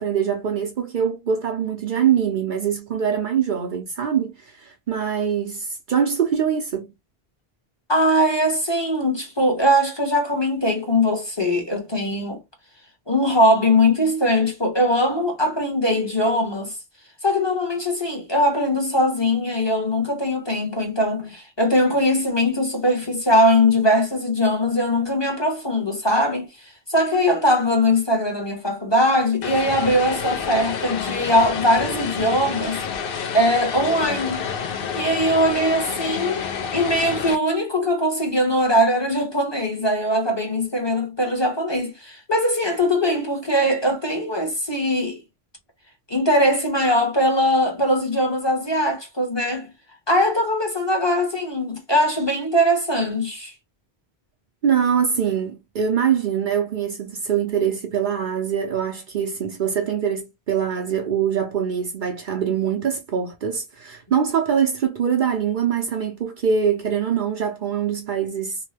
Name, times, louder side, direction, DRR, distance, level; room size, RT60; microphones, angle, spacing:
voice 1, 0.0-6.9 54.6-68.6, right 8 dB, 60° right, 0.7 m, -23 dB
voice 2, 7.9-12.4 13.1-16.8 17.2-32.8 33.3-34.5 34.9-36.4 36.7-45.2 46.1-49.7 50.1-53.5, left 1 dB, 25° left, 0.9 m, -21 dB
Vehicle, 29.4-37.4, left 6 dB, 65° left, 0.8 m, -29 dB
2.8 x 2.1 x 3.2 m
omnidirectional pair, 1.1 m